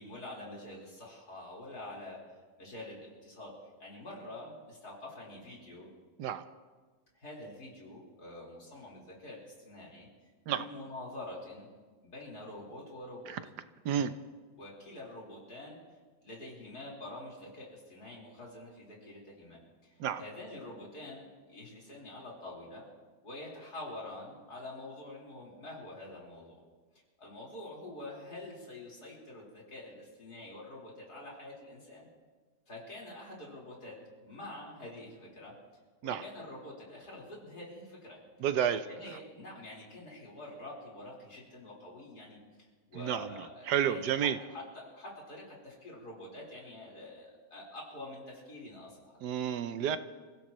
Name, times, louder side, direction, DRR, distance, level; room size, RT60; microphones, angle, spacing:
voice 1, 0.0-3.5 3.8-5.9 7.2-10.1 10.5-11.7 12.0-13.4 14.6-15.8 16.2-22.9 23.2-26.6 27.2-32.1 32.7-34.0 34.2-35.5 36.0-38.2 38.7-49.2, left 1 dB, 60° left, -4 dB, 5.0 m, -46 dB
voice 2, 38.4-38.8 42.9-44.4 49.2-50.0, right 9 dB, 75° right, 11 dB, 1.2 m, -31 dB
28.5 x 16.5 x 3.1 m, 1.4 s
omnidirectional pair, 1.9 m